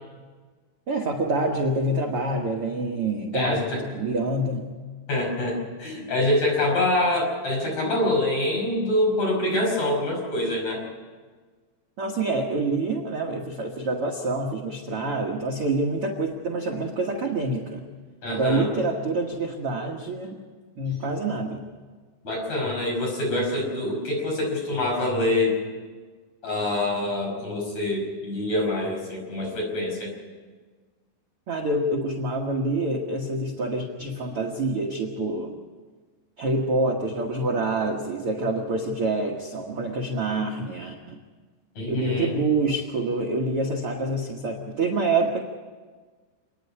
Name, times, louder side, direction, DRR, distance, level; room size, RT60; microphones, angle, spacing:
voice 1, 0.9-4.7 12.0-17.8 18.3-20.4 20.8-21.6 31.5-35.6 36.4-41.2 41.9-45.4, right 2 dB, 75° right, 1 dB, 1.3 m, -26 dB
voice 2, 3.3-3.8 5.1-10.8 18.2-18.7 22.2-25.6 26.4-30.1 41.8-42.3, left 1 dB, 45° left, -1 dB, 6.6 m, -25 dB
28.5 x 9.9 x 9.6 m, 1.5 s
omnidirectional pair, 4.8 m